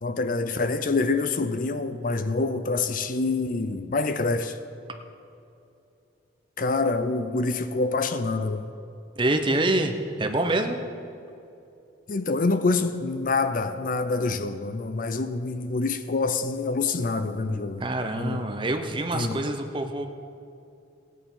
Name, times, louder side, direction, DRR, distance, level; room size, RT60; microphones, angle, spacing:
voice 1, 0.0-4.6 6.6-8.7 12.1-17.9 18.2-18.4 19.1-19.4, left 3 dB, 45° left, 0.5 m, -26 dB
voice 2, 9.2-10.8 17.8-20.1, right 2 dB, 25° right, 0.8 m, -26 dB
16.5 x 9.3 x 5.6 m
head